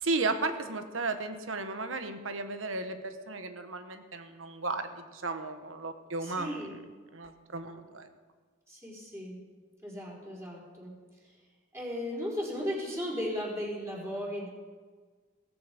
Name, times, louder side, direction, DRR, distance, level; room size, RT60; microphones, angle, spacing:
voice 1, 0.0-6.6 7.1-8.1, right 3 dB, 80° right, 8 dB, 1.4 m, -34 dB
voice 2, 6.2-6.8 8.7-9.4 9.8-11.0 11.2-11.4 11.7-14.5, equal, 15° right, -4 dB, 4.6 m, -36 dB
17.5 x 15.0 x 5.4 m, 1.5 s
head